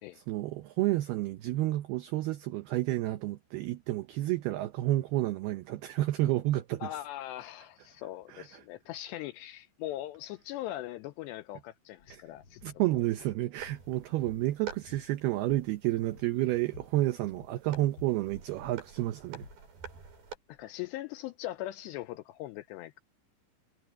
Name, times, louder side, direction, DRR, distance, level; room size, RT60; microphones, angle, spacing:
voice 1, 0.1-6.9 8.3-8.6 12.1-12.2 12.6-19.5, right 16 dB, 90° right, 2.2 m, -30 dB
voice 2, 6.8-12.6 20.5-23.0, left 14 dB, 90° left, 2.5 m, -40 dB
sound 1, 12.0-20.6, left 5 dB, 70° left, 1.2 m, -56 dB
sound 2, 13.6-20.4, right 7 dB, 50° right, 7.1 m, -48 dB
omnidirectional pair, 5.6 m